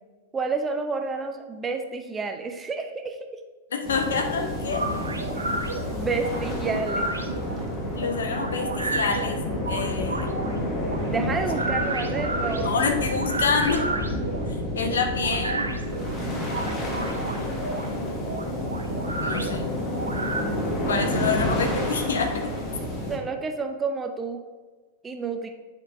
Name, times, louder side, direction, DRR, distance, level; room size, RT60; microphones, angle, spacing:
voice 1, 0.3-3.2 5.9-7.1 11.0-12.7 23.1-24.4 25.0-25.5, right 4 dB, 15° right, 5 dB, 0.6 m, -29 dB
voice 2, 3.7-4.9 7.9-9.4 9.7-10.3 12.6-13.8 14.7-15.7 19.2-19.7 20.9-22.5, left 5 dB, 65° left, 5 dB, 0.9 m, -27 dB
sound 1, 3.8-23.2, left 1 dB, 25° left, 1.3 m, -29 dB
sound 2, 4.7-20.4, right 3 dB, 80° right, 0.7 m, -32 dB
10.5 x 4.4 x 2.6 m, 1.3 s
figure-of-eight pair, 100°, 0 cm